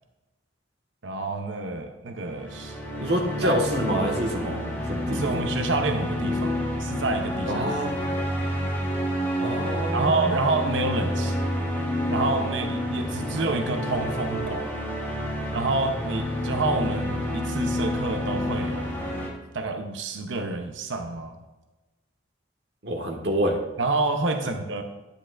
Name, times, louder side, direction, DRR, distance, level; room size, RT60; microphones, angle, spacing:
voice 1, 1.0-2.8 3.4-3.6 5.1-7.7 9.9-11.4 12.1-14.7 15.5-21.4 23.8-24.8, right 3 dB, 80° right, 6 dB, 0.7 m, -28 dB
sound 1, 2.3-19.3, left 1 dB, 10° left, 1.2 m, -29 dB
voice 2, 3.0-5.3 7.5-8.0 9.4-10.2 22.8-23.6, right 1 dB, 65° right, 0 dB, 1.5 m, -27 dB
10.0 x 8.9 x 2.5 m, 1.1 s
head